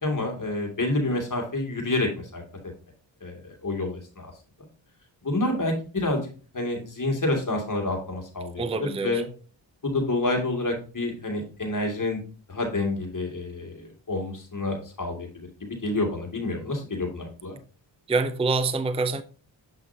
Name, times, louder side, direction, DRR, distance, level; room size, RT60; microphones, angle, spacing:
voice 1, 0.0-2.4 3.2-4.3 5.2-6.3 6.5-9.3 9.8-12.2 12.5-17.6, left 2 dB, 40° left, 2.4 m, -28 dB
voice 2, 8.6-9.2 18.1-19.2, right 3 dB, 15° right, 0.5 m, -26 dB
8.0 x 5.6 x 2.8 m
cardioid pair, 65°, 46 cm